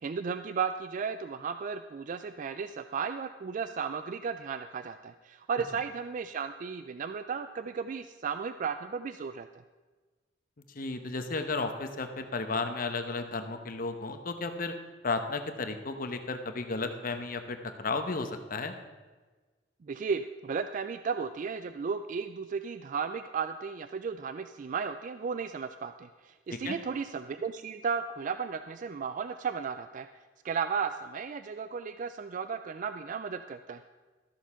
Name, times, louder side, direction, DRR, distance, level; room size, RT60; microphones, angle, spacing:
voice 1, 0.0-9.5 19.8-30.1 30.4-33.8, right 6 dB, 45° right, 11 dB, 0.3 m, -34 dB
voice 2, 10.7-14.7 15.0-18.7 26.5-26.8, left 3 dB, 50° left, 7 dB, 1.0 m, -33 dB
13.5 x 7.2 x 5.6 m, 1.3 s
head